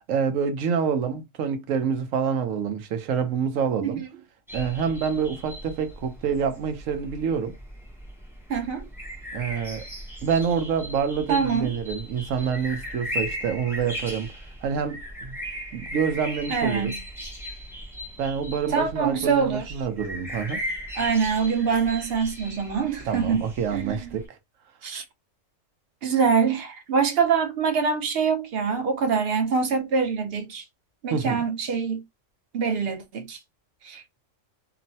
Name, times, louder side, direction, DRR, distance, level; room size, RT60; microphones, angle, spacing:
voice 1, 0.1-4.0 4.5-7.5 9.3-9.8 10.2-14.3 14.6-15.0 15.7-16.9 18.2-20.6 23.1-24.4 31.1-31.4, right 6 dB, 85° right, 1.0 m, -27 dB
sound 1, 4.5-24.3, equal, 5° right, 0.5 m, -38 dB
voice 2, 8.5-8.9 11.3-11.7 16.5-17.0 18.7-19.7 21.0-23.4 23.7-24.2 24.8-25.0 26.0-30.6 31.0-32.0 32.5-33.4 33.8-34.0, right 6 dB, 60° right, 0.8 m, -24 dB
3.0 x 2.0 x 2.6 m
omnidirectional pair, 1.3 m